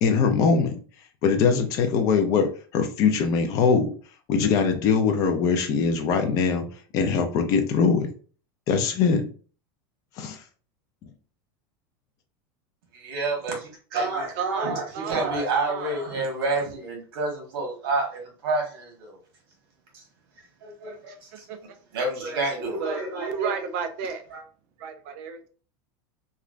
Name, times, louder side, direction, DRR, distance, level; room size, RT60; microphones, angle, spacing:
voice 1, 0.0-0.7 1.2-3.9 4.3-6.6 6.9-8.1 8.7-9.3 10.2-10.4, left 5 dB, 25° left, 5 dB, 0.4 m, -22 dB
voice 2, 12.9-19.2 19.9-20.0 20.6-21.4 21.9-23.6 24.3-24.4, right 3 dB, 65° right, 1 dB, 1.3 m, -29 dB
voice 3, 14.4-15.3 15.7-16.0 16.4-16.7 21.1-21.6 22.8-24.3 24.8-25.5, right 6 dB, 40° right, 7 dB, 0.4 m, -33 dB
3.1 x 2.4 x 2.4 m, 0.40 s
supercardioid pair, 180°, 13 cm